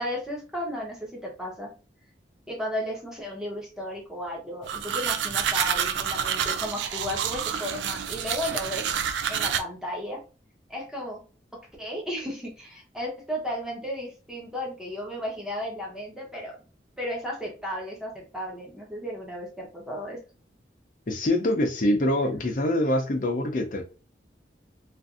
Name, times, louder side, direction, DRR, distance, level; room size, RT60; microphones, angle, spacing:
voice 1, 0.0-1.7 2.5-8.9 9.3-10.2 10.7-11.2 11.8-16.5 17.0-20.2, left 1 dB, 5° right, -2 dB, 0.8 m, -34 dB
sound 1, 4.7-9.6, right 8 dB, 80° right, 0.3 m, -28 dB
voice 2, 21.1-23.8, left 1 dB, 45° left, 4 dB, 0.5 m, -24 dB
2.5 x 2.5 x 2.4 m, 0.35 s
head